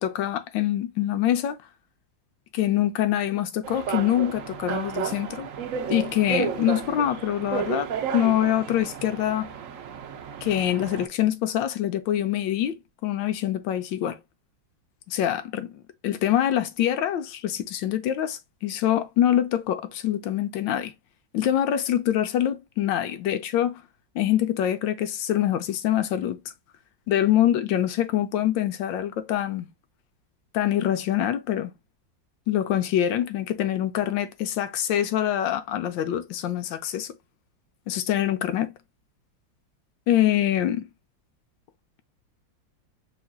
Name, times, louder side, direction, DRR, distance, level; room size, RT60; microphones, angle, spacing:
voice 1, 0.0-1.6 2.5-5.5 5.9-9.5 10.4-12.8 13.0-14.2 15.1-20.9 21.3-23.8 24.1-26.4 27.1-29.7 30.5-31.7 32.5-37.1 37.9-38.7 40.1-40.9, left 11 dB, 80° left, 1.3 m, -25 dB
sound 1, 3.6-11.1, right 7 dB, 65° right, 0.8 m, -32 dB
5.7 x 2.5 x 2.3 m
omnidirectional pair, 2.0 m